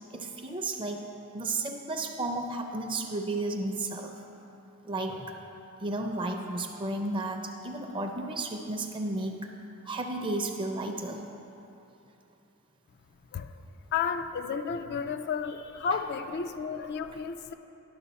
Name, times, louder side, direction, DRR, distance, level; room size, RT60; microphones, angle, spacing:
voice 1, 0.1-1.1 1.3-4.1 4.8-5.4 5.8-9.3 9.9-11.2 15.9-16.0, right 2 dB, 25° right, 4 dB, 0.5 m, -33 dB
voice 2, 13.9-17.5, left 6 dB, 50° left, 8 dB, 0.3 m, -32 dB
11.0 x 6.2 x 4.1 m, 2.9 s
head